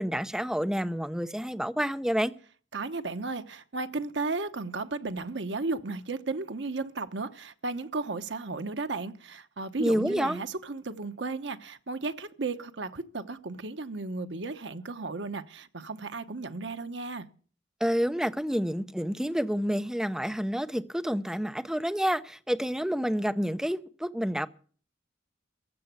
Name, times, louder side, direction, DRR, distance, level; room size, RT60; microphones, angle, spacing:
voice 1, 0.0-2.3 9.8-10.4 17.8-24.5, equal, 5° right, 0.7 m, -29 dB
voice 2, 2.7-17.3, right 3 dB, 75° right, 1.0 m, -34 dB
15.0 x 7.0 x 9.4 m
head